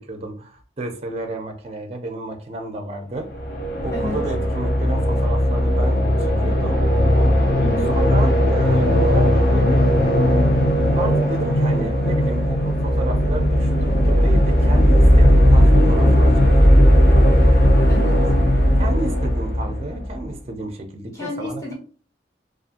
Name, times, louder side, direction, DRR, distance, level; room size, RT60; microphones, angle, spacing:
voice 1, 0.1-3.3 3.8-6.8 7.9-9.9 10.9-16.7 18.8-21.7, right 2 dB, 35° right, 4 dB, 0.4 m, -32 dB
sound 1, 3.2-20.2, equal, 55° left, 0.6 m, -17 dB
voice 2, 7.6-7.9 17.9-18.2 21.1-21.7, left 3 dB, 15° left, -5 dB, 1.0 m, -30 dB
2.6 x 2.4 x 2.5 m, 0.40 s
head